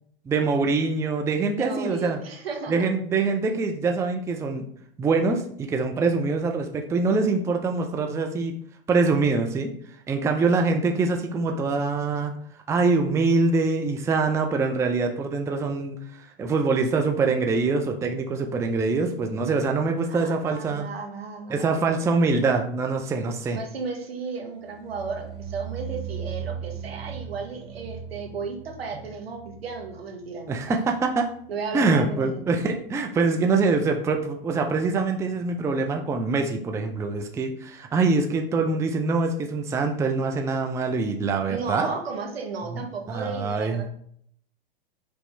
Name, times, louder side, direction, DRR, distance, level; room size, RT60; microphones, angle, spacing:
voice 1, 0.3-2.2 2.7-4.7 5.0-8.5 8.9-9.7 10.1-12.3 12.7-20.9 21.5-23.6 30.5-31.3 31.7-41.9 42.7-42.8 43.1-43.9, right 3 dB, 10° right, 4 dB, 0.4 m, -24 dB
voice 2, 1.5-2.9 20.2-21.8 23.5-30.8 31.5-32.4 41.5-43.9, right 4 dB, 85° right, 2 dB, 1.2 m, -34 dB
sound 1, 24.6-31.7 32.0-32.5 32.8-32.9, right 7 dB, 60° right, 0.8 m, -38 dB
5.2 x 3.1 x 3.1 m, 0.63 s
hypercardioid pair, 105°, 29 cm